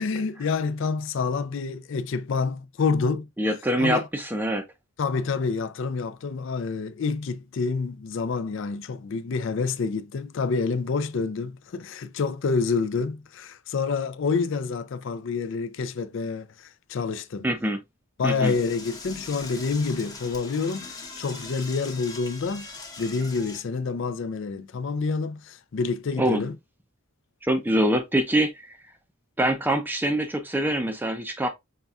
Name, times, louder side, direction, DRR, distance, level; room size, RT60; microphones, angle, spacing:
voice 1, 0.0-3.3 3.8-4.1 5.0-17.5 18.2-26.6, left 4 dB, 60° left, 0.4 m, -28 dB
voice 2, 3.4-4.6 17.4-17.8 18.2-18.5 26.2-26.4 27.4-28.8 29.4-31.5, right 1 dB, 10° right, 0.4 m, -24 dB
Door / Toilet flush, 18.4-23.6, left 3 dB, 15° left, 0.8 m, -41 dB
5.5 x 3.5 x 2.3 m
head